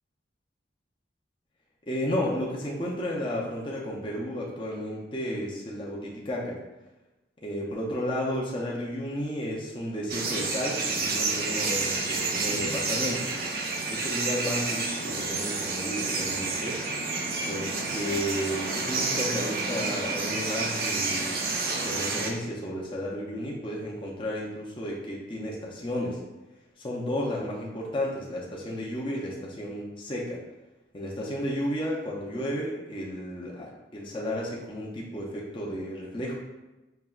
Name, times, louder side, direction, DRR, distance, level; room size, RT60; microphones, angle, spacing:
voice 1, 1.8-6.6 7.4-13.3 13.9-16.8 17.5-21.4 21.8-26.2 26.8-30.4 30.9-36.3, equal, 30° left, -4 dB, 0.6 m, -33 dB
sound 1, 10.1-22.3, right 3 dB, 55° right, 0.5 m, -29 dB
5.6 x 2.9 x 2.4 m, 1.1 s
head